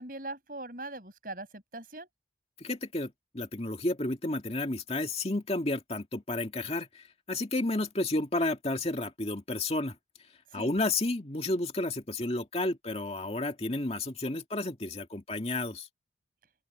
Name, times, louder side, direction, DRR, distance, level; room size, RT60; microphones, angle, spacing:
voice 1, 0.0-2.1 10.5-10.7, right 2 dB, 50° right, 7.9 m, -41 dB
voice 2, 2.6-10.0 10.5-15.9, left 2 dB, 35° left, 2.1 m, -31 dB
open air
head